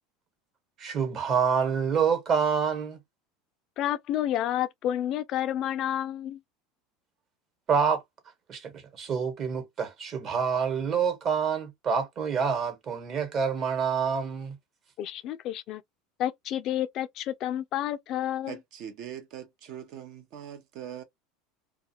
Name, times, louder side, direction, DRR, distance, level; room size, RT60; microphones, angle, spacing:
voice 1, 0.8-3.0 7.7-8.0 8.5-14.6, right 6 dB, 40° right, 1.1 m, -27 dB
voice 2, 3.8-6.4 15.0-15.8 16.2-18.5, left 11 dB, 50° left, 0.3 m, -30 dB
voice 3, 18.5-21.0, right 9 dB, 60° right, 0.6 m, -41 dB
2.3 x 2.3 x 2.8 m
supercardioid pair, 115°, 0 cm